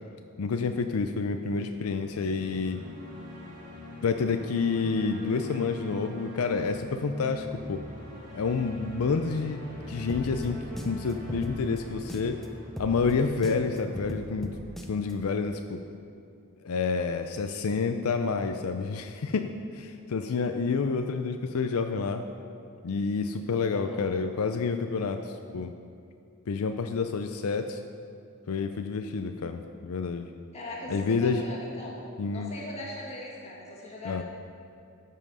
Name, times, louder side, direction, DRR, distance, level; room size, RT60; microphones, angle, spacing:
voice 1, 0.4-2.8 4.0-7.8 8.3-10.6 10.8-12.4 12.8-14.5 14.9-15.8 16.6-22.2 22.8-25.7 26.5-27.8 28.5-30.3 30.9-31.4 32.2-32.5 34.0-34.2, left 4 dB, 80° left, 7 dB, 0.5 m, -29 dB
sound 1, 1.5-15.7, left 1 dB, 40° right, 1.8 m, -43 dB
sound 2, 10.1-12.5 12.8-15.1, equal, ahead, 0.6 m, -39 dB
voice 2, 23.7-24.1 30.5-32.0 32.3-34.2, left 1 dB, 30° left, -4 dB, 1.9 m, -40 dB
13.0 x 5.7 x 5.4 m, 2.4 s
head